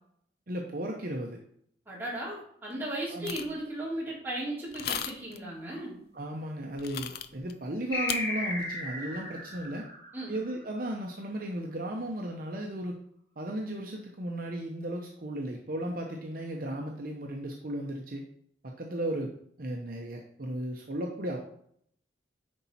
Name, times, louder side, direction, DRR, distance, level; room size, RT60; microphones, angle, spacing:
voice 1, 0.5-1.4 3.1-3.3 6.1-9.9 10.3-13.0 13.4-18.2 18.6-21.4, right 1 dB, 50° right, 1 dB, 0.8 m, -35 dB
voice 2, 1.9-6.0 10.1-10.4, right 1 dB, 10° right, -8 dB, 3.5 m, -36 dB
sound 1, 3.2-3.6 4.7-5.4 6.8-7.5 8.1-8.2, left 9 dB, 55° left, 0.5 m, -35 dB
sound 2, 7.9-10.9, left 1 dB, 20° left, 2.2 m, -35 dB
10.0 x 4.1 x 4.2 m, 0.68 s
head